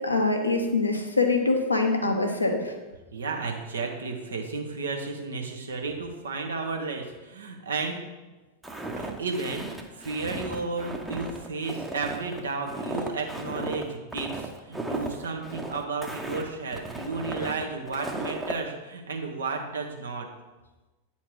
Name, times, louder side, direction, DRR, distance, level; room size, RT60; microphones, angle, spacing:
voice 1, 0.0-2.7, left 3 dB, 80° left, 3 dB, 1.0 m, -24 dB
voice 2, 3.1-8.0 9.0-20.3, right 4 dB, 70° right, 3 dB, 1.1 m, -33 dB
Walk footsteps, 8.6-18.6, right 2 dB, 5° right, 0.8 m, -35 dB
8.8 x 4.3 x 4.6 m, 1.2 s
figure-of-eight pair, 90°, 0 cm